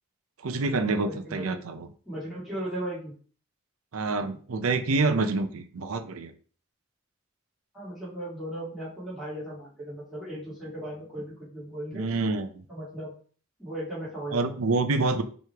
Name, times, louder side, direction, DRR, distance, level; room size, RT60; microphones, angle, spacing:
voice 1, 0.4-1.9 3.9-6.3 11.9-12.5 14.3-15.2, right 3 dB, 90° right, 9 dB, 0.6 m, -27 dB
voice 2, 1.0-1.6 2.1-3.1 7.7-12.1 12.7-13.1 13.6-14.6 15.1-15.2, right 1 dB, ahead, -10 dB, 2.4 m, -37 dB
4.7 x 3.2 x 3.4 m, 0.43 s
head